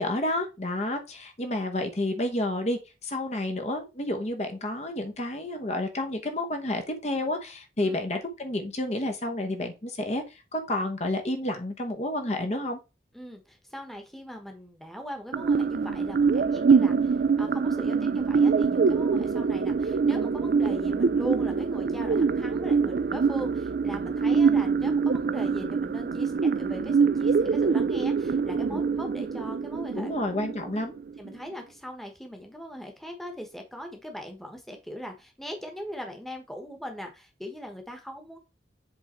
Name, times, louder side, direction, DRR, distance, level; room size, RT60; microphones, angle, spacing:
voice 1, 0.0-10.2 10.5-12.8 28.7-28.8 29.9-30.9, left 1 dB, 40° left, 1.0 m, -30 dB
voice 2, 13.1-30.1 31.2-38.4, equal, ahead, 1.2 m, -40 dB
sound 1, 15.3-31.3, right 5 dB, 55° right, 0.3 m, -24 dB
7.8 x 3.5 x 4.3 m
head